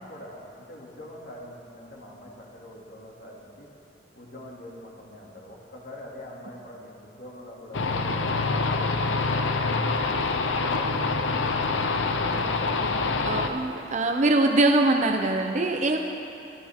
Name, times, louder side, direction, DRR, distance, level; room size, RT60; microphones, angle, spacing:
voice 1, 0.0-3.7 4.1-9.9 10.3-13.3, left 1 dB, 55° left, -3 dB, 2.6 m, -43 dB
sound 1, 7.7-13.5, left 3 dB, 85° left, 0.8 m, -26 dB
voice 2, 13.2-16.0, right 2 dB, 40° right, 3 dB, 0.8 m, -23 dB
22.0 x 13.5 x 3.7 m, 2.7 s
head